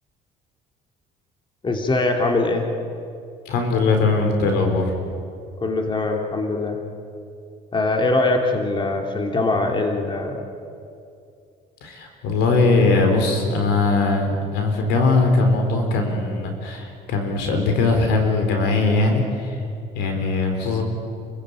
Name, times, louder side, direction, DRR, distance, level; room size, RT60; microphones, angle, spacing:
voice 1, 1.6-2.7 5.6-6.8 7.7-10.5, left 2 dB, 30° left, 3 dB, 2.9 m, -22 dB
voice 2, 3.5-4.9 11.8-19.6 19.9-20.8, left 3 dB, 90° left, 4 dB, 4.4 m, -20 dB
29.0 x 15.5 x 9.1 m, 2.5 s
cardioid pair, 110°, 17 cm